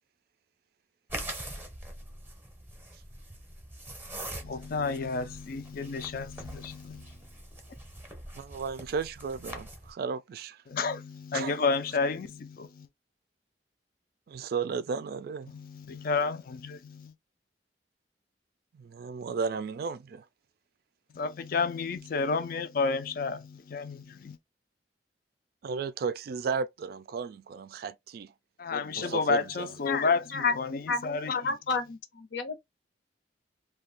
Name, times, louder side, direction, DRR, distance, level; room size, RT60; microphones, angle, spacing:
sound 1, 1.1-9.9, right 1 dB, 10° right, 0.7 m, -43 dB
voice 1, 4.4-7.1 10.7-12.9 15.5-17.1 21.1-24.4 28.6-31.5, left 4 dB, 55° left, 0.4 m, -30 dB
voice 2, 8.3-10.6 11.3-11.6 14.3-15.5 18.7-20.2 25.6-28.3 28.9-29.7, right 5 dB, 55° right, 0.3 m, -34 dB
voice 3, 30.9-32.6, left 3 dB, 80° left, 0.9 m, -33 dB
2.5 x 2.2 x 3.3 m
head